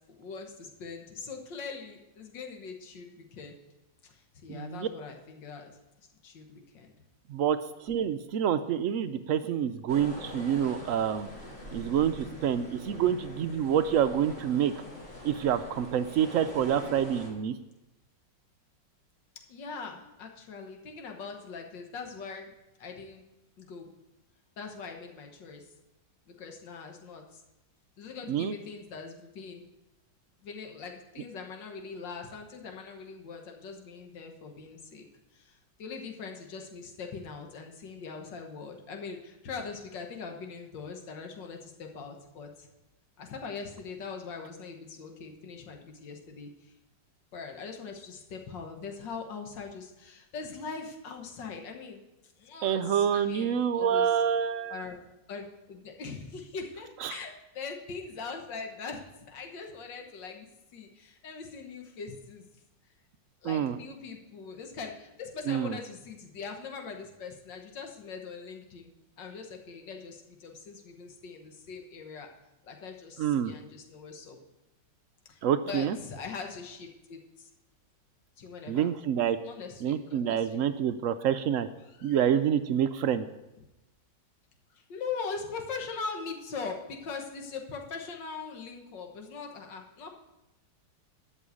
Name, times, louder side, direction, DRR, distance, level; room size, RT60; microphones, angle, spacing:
voice 1, 0.2-3.6 4.0-5.8 6.2-6.9 19.5-22.5 22.8-23.2 23.6-23.9 24.6-25.7 26.3-27.4 28.0-29.7 30.4-35.1 35.3-42.7 43.2-46.7 47.3-52.0 52.4-54.1 54.7-55.0 55.3-59.0 59.3-60.5 60.7-62.4 63.4-68.9 69.2-72.3 72.6-74.4 75.3-77.5 78.4-78.9 79.4-80.4 81.8-82.3 84.7-90.1, left 5 dB, 80° left, 3 dB, 2.0 m, -41 dB
voice 2, 4.5-4.9 7.3-11.3 11.7-14.7 15.2-17.5 28.3-28.5 52.6-54.8 57.0-57.2 63.4-63.8 65.5-65.8 73.2-73.5 75.4-76.0 78.7-79.4 79.8-81.7 82.0-83.3, right 9 dB, 85° right, 10 dB, 0.7 m, -27 dB
sound 1, 9.9-17.3, left 1 dB, 35° left, 4.0 m, -43 dB
12.5 x 5.6 x 8.4 m, 0.95 s
omnidirectional pair, 1.9 m